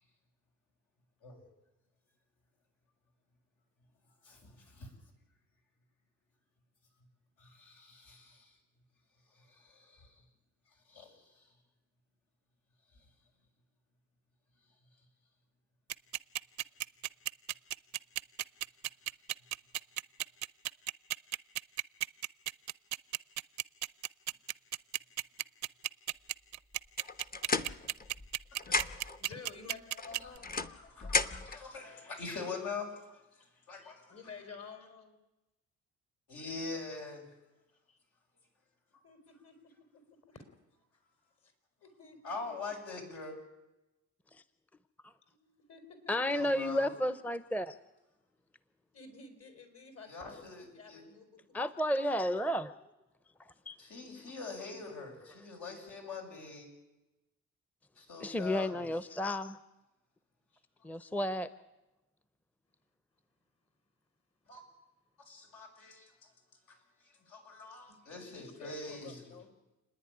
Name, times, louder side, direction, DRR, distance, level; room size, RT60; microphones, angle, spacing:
voice 1, 4.2-4.9 7.4-8.5 9.3-10.1 10.9-11.2 28.7-29.0 30.6-33.2 33.7-34.2 36.3-37.2 42.2-43.3 46.3-46.9 50.1-51.0 53.8-56.7 57.9-58.9 64.5-64.6 65.3-66.1 66.7-66.8 67.0-69.3, left 4 dB, 75° left, 1 dB, 6.9 m, -44 dB
sound 1, 15.9-30.4, right 14 dB, 65° right, 0.6 m, -34 dB
sound 2, 27.0-28.3 28.6-29.2 30.0-31.6, left 3 dB, 30° left, 1.0 m, -34 dB
voice 2, 28.8-30.5 33.8-35.2 37.9-38.0 39.0-40.0 40.3-40.4 41.4-41.5 41.8-42.5 45.3-46.5 48.9-51.5 54.0-54.8 67.9-69.5, left 5 dB, 55° left, 7 dB, 4.4 m, -52 dB
voice 3, 46.1-47.8 51.5-52.7 53.7-53.8 58.2-59.6 60.8-61.5, equal, 5° left, 14 dB, 0.7 m, -32 dB
29.0 x 10.5 x 9.9 m, 1.0 s
cardioid pair, 90°, 30 cm